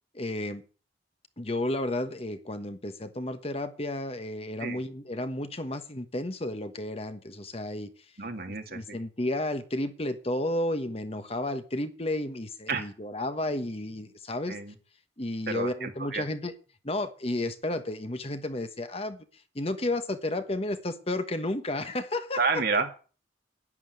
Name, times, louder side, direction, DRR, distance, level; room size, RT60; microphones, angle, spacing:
voice 1, 0.1-0.6 1.4-7.9 8.5-14.6 15.2-16.5 16.8-22.6, left 1 dB, 30° left, 9 dB, 1.2 m, -32 dB
voice 2, 8.2-9.0 12.7-12.9 14.5-14.7 15.5-16.2 22.4-22.9, right 4 dB, 55° right, 5 dB, 2.2 m, -30 dB
11.0 x 9.9 x 8.2 m, 0.38 s
head